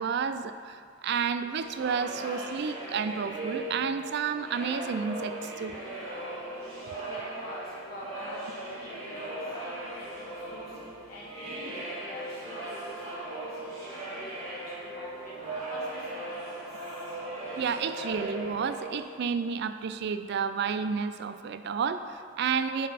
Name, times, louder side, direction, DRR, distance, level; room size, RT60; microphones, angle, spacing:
voice 1, 0.0-5.8 17.6-22.9, right 6 dB, 55° right, 10 dB, 0.3 m, -31 dB
sound 1, 1.6-19.4, right 1 dB, 75° right, 1.8 m, -38 dB
voice 2, 7.1-10.7 11.1-15.3 15.7-16.6, left 1 dB, 50° left, -7 dB, 1.3 m, -45 dB
8.6 x 3.9 x 5.0 m, 2.2 s
head